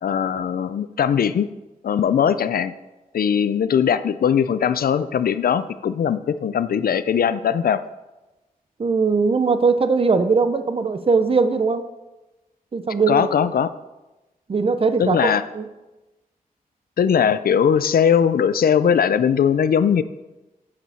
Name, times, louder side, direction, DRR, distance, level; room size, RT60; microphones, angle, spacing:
voice 1, 0.0-1.5 1.8-2.7 3.1-7.8 13.1-13.7 15.0-15.4 17.0-20.0, left 8 dB, 90° left, 14 dB, 0.5 m, -20 dB
voice 2, 8.8-11.8 12.7-13.2 14.5-15.6, right 4 dB, 40° right, 10 dB, 0.7 m, -20 dB
8.7 x 7.5 x 5.6 m, 1.1 s
wide cardioid pair, 160°, 15 cm